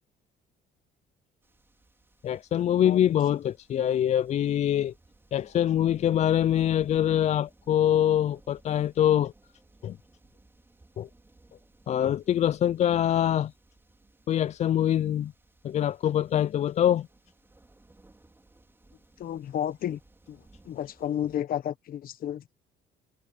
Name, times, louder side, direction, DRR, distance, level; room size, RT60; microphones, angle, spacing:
sound 1, 1.4-21.4, right 2 dB, 15° right, 4.4 m, -60 dB
voice 1, 2.2-4.9 5.3-9.3 9.8-10.0 11.0-11.1 11.9-13.5 14.3-15.3 15.6-17.1, left 10 dB, 40° left, 0.4 m, -24 dB
voice 2, 19.2-20.0 20.3-22.4, left 10 dB, 60° left, 1.3 m, -32 dB
cardioid pair, 110°, 17 cm